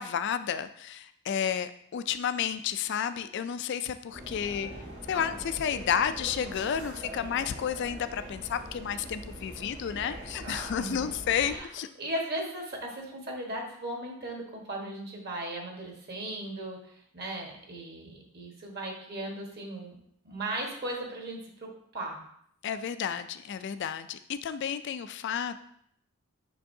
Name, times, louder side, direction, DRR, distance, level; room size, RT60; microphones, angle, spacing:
voice 1, 0.0-4.7 5.1-11.9 22.6-25.6, left 8 dB, 55° left, 11 dB, 0.3 m, -31 dB
sound 1, 4.1-11.6, right 1 dB, 65° right, 1.7 m, -42 dB
voice 2, 10.7-11.1 11.4-11.7 12.0-19.9 20.2-22.2, right 1 dB, 45° right, 0 dB, 1.3 m, -37 dB
6.8 x 5.5 x 2.7 m, 0.69 s
head